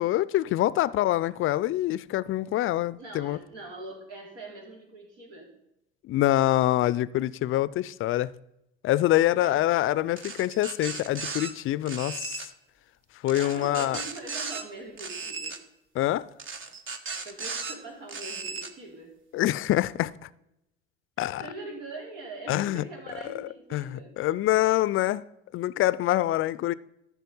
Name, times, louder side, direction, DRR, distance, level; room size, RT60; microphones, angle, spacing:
voice 1, 0.0-3.4 6.0-8.3 8.8-12.5 13.2-14.0 15.9-16.3 19.3-20.3 21.2-21.4 22.5-22.8 23.7-25.2 25.5-26.7, left 14 dB, 45° left, 0.5 m, -25 dB
voice 2, 3.0-5.5 9.4-9.6 13.4-15.6 17.2-19.2 21.2-24.2, right 2 dB, 75° right, 3.6 m, -42 dB
sound 1, 10.2-11.5 11.9-12.5 13.3-14.6 15.0-15.6 16.4-17.7 18.1-18.7, right 4 dB, 40° right, 1.3 m, -36 dB
13.0 x 5.7 x 5.5 m
hypercardioid pair, 70°, 29 cm